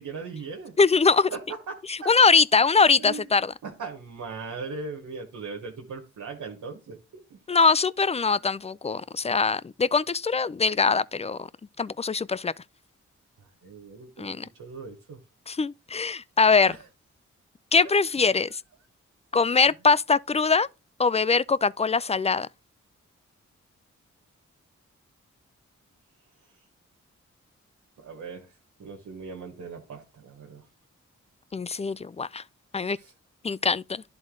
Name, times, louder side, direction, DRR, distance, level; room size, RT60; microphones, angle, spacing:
voice 1, 0.0-0.7 1.3-1.4 1.7-2.1 3.0-3.2 3.6-7.0 7.3-7.4 13.6-14.3 14.6-15.2 16.7-16.8 28.0-28.5 28.8-30.6 33.0-33.1, right 4 dB, 85° right, 1.2 m, -38 dB
voice 2, 0.8-1.3 1.9-3.5 7.5-11.5 11.8-12.5 14.2-14.5 15.5-16.7 17.7-18.6 19.3-20.7 21.0-22.5 31.5-32.4 32.7-33.0 33.4-34.0, left 4 dB, 20° left, 0.3 m, -22 dB
11.0 x 3.9 x 3.7 m
cardioid pair, 50°, 30 cm